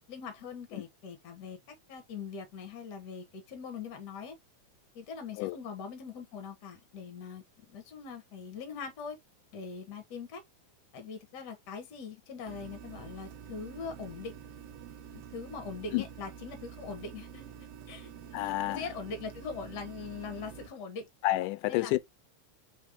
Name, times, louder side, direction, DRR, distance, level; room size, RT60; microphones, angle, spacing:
voice 1, 0.1-4.3 4.9-9.2 9.5-10.4 10.9-14.3 15.1-17.5 17.9-18.1 18.7-21.1 21.7-22.0, left 5 dB, 55° left, 1.2 m, -42 dB
sound 1, 12.5-20.7, right 8 dB, 70° right, 1.6 m, -48 dB
voice 2, 18.3-18.8 21.2-22.0, left 17 dB, 90° left, 2.1 m, -29 dB
4.5 x 3.4 x 3.5 m
omnidirectional pair, 3.6 m